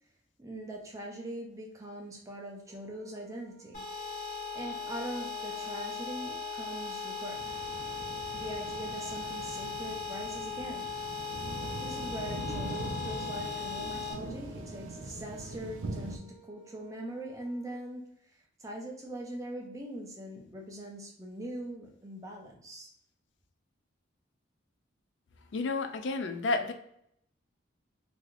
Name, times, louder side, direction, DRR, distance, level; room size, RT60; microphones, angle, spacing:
voice 1, 0.4-3.8 4.5-7.4 8.3-10.9 11.8-22.9, right 1 dB, 15° right, 0.5 m, -42 dB
Brass instrument, 2.7-9.1 11.2-17.8, right 2 dB, 35° right, 0.9 m, -55 dB
sound 1, 3.7-14.1, left 5 dB, 45° left, 1.4 m, -38 dB
sound 2, 7.4-16.2, right 2 dB, 85° right, 0.4 m, -42 dB
voice 2, 25.5-26.7, left 3 dB, 65° left, 0.3 m, -31 dB
3.2 x 2.7 x 2.5 m
head